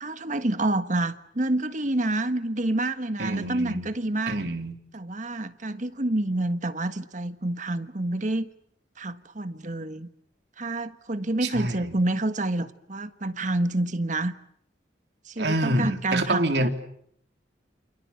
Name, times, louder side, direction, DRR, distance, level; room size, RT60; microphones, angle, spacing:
voice 1, 0.0-4.4 4.9-8.5 9.0-10.1 10.6-14.3 15.3-16.7, right 2 dB, 45° right, 10 dB, 1.5 m, -28 dB
voice 2, 3.2-3.9 4.3-4.7 11.4-11.9 15.4-16.7, right 1 dB, 70° right, 5 dB, 3.5 m, -27 dB
29.0 x 27.0 x 7.2 m, 0.68 s
head